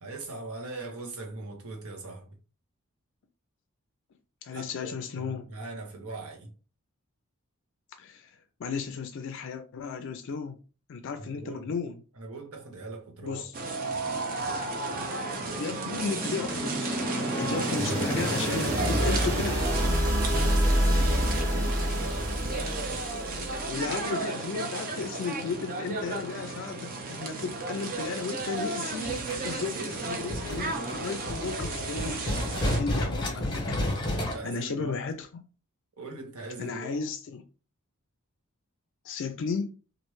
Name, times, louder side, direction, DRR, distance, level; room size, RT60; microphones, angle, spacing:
voice 1, 0.0-2.4 4.5-6.5 11.2-11.7 12.1-13.5 18.0-19.8 20.2-23.4 33.0-33.2 34.1-35.0 36.0-37.0, right 3 dB, 75° right, 1.0 m, -41 dB
voice 2, 4.4-5.5 8.0-10.6 10.9-12.0 13.2-13.5 15.5-19.6 23.7-29.2 29.4-32.3 32.8-34.1 34.4-35.4 36.6-37.4 39.0-39.7, left 5 dB, 55° left, 0.4 m, -34 dB
sound 1, 13.5-32.8, right 3 dB, 40° right, 0.6 m, -34 dB
sound 2, 15.0-23.9, equal, 15° right, 1.0 m, -28 dB
sound 3, 29.0-34.3, left 1 dB, 20° left, 0.8 m, -31 dB
3.1 x 2.5 x 3.1 m
head